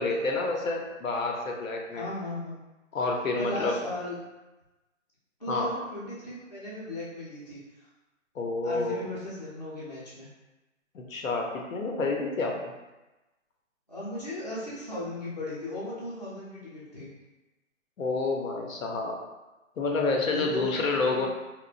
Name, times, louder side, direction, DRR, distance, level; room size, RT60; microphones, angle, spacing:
voice 1, 0.0-2.1 2.9-3.8 5.5-5.7 8.3-9.1 10.9-12.7 18.0-19.2 19.8-21.3, left 3 dB, 90° left, 1 dB, 0.7 m, -29 dB
voice 2, 1.9-2.6 3.4-4.1 5.4-7.9 8.6-10.3 13.9-17.1 20.3-21.3, left 2 dB, 35° left, -9 dB, 0.5 m, -36 dB
3.0 x 2.0 x 2.4 m, 1.1 s
hypercardioid pair, 180°, 39 cm